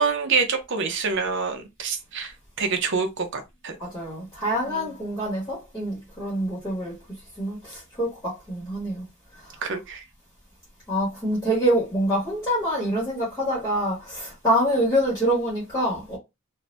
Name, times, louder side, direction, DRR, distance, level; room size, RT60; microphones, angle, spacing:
voice 1, 0.0-2.3 2.6-3.8 4.7-4.9 9.6-10.0, right 5 dB, 55° right, 0.6 m, -26 dB
voice 2, 3.8-6.9 7.4-9.0 9.4-9.6 10.9-16.2, equal, 15° left, 1.4 m, -26 dB
2.7 x 2.6 x 3.2 m
head